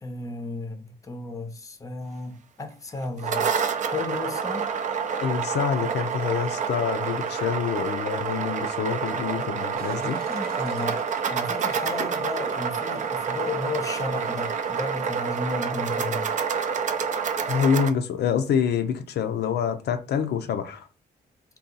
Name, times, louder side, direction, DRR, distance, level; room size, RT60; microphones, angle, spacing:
voice 1, 0.0-3.5 3.9-4.7 10.3-16.3, left 3 dB, 20° left, 0.5 m, -34 dB
sound 1, 3.0-17.9, right 6 dB, 45° right, 0.4 m, -28 dB
voice 2, 5.2-10.2 17.5-20.9, left 7 dB, 75° left, 0.4 m, -26 dB
sound 2, 9.8-14.9, right 3 dB, 70° right, 0.9 m, -41 dB
2.7 x 2.3 x 3.8 m
cardioid pair, 125°, 17 cm